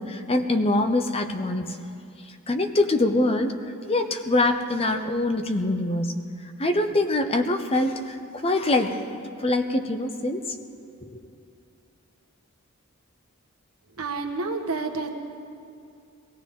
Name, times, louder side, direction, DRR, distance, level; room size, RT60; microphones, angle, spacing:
voice 1, 0.0-1.8 2.5-3.6 3.9-6.1 6.6-8.2 8.4-9.0 9.4-10.4 11.0-11.2, left 2 dB, 25° left, 6 dB, 0.7 m, -24 dB
voice 2, 14.0-15.1, right 3 dB, 75° right, 3 dB, 1.4 m, -29 dB
23.0 x 17.0 x 3.7 m, 2.4 s
head